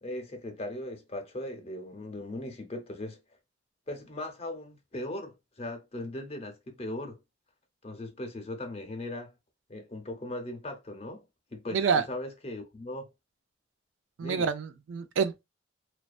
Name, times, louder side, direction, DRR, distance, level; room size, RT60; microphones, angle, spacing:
voice 1, 0.0-3.2 3.9-7.2 7.8-9.3 9.7-11.2 11.5-13.1 14.2-14.5, left 1 dB, 35° left, 0.6 m, -38 dB
voice 2, 11.7-12.0 14.2-15.4, right 6 dB, 80° right, 0.4 m, -27 dB
2.4 x 2.2 x 2.3 m
head